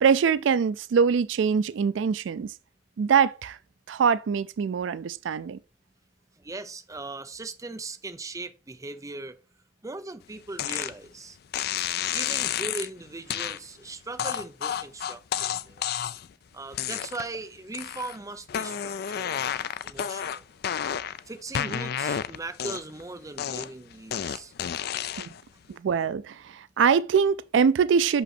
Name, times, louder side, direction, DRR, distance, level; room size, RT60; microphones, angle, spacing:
voice 1, 0.0-2.5 3.0-3.6 3.9-5.6 25.2-25.3 25.7-28.2, right 6 dB, 80° right, 0.3 m, -23 dB
voice 2, 6.4-9.4 9.8-11.4 12.1-15.9 16.5-20.5 21.3-24.5, right 2 dB, 20° right, 0.6 m, -39 dB
sound 1, 10.6-10.9 11.5-12.9 13.3-13.6 14.2-16.3 16.7-17.4 17.7-18.2 18.5-21.2 21.5-23.0 23.4-25.4, left 9 dB, 55° left, 0.4 m, -30 dB
6.1 x 5.5 x 4.1 m
head